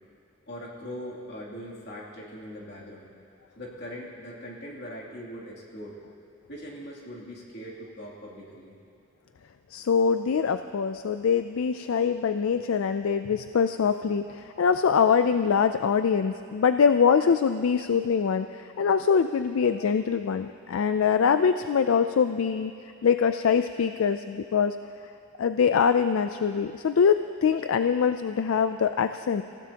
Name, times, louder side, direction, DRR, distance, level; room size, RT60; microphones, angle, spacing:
voice 1, 0.5-3.1 3.6-6.0 6.5-8.7, equal, 55° left, -4 dB, 2.8 m, -41 dB
voice 2, 9.7-22.7 23.0-24.8 25.4-29.4, left 6 dB, 75° left, 10 dB, 0.4 m, -23 dB
26.0 x 16.0 x 2.9 m, 2.5 s
head